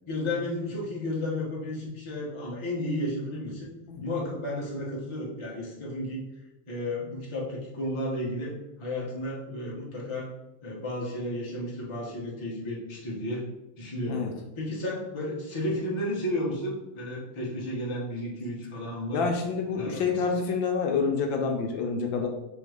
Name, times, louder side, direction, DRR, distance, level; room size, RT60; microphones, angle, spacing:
voice 1, 0.1-3.7 4.0-6.2 6.7-8.5 8.8-10.3 10.6-13.4 13.8-14.2 14.6-19.3 19.7-20.3, left 1 dB, 25° left, -5 dB, 0.7 m, -33 dB
voice 2, 19.1-22.3, left 5 dB, 75° left, 3 dB, 1.3 m, -27 dB
3.5 x 3.0 x 4.9 m, 0.96 s
omnidirectional pair, 2.2 m